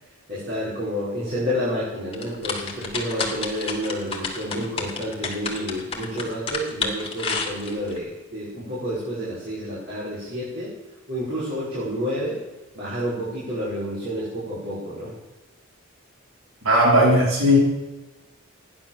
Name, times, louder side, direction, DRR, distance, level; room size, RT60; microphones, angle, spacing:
voice 1, 0.3-10.7 11.1-12.4 12.7-15.1, equal, 55° right, -10 dB, 5.6 m, -29 dB
sound 1, 2.1-8.0, left 4 dB, 30° left, 2.7 m, -30 dB
voice 2, 16.6-17.6, equal, 80° right, -3 dB, 5.2 m, -16 dB
14.5 x 10.5 x 7.5 m, 1.1 s
head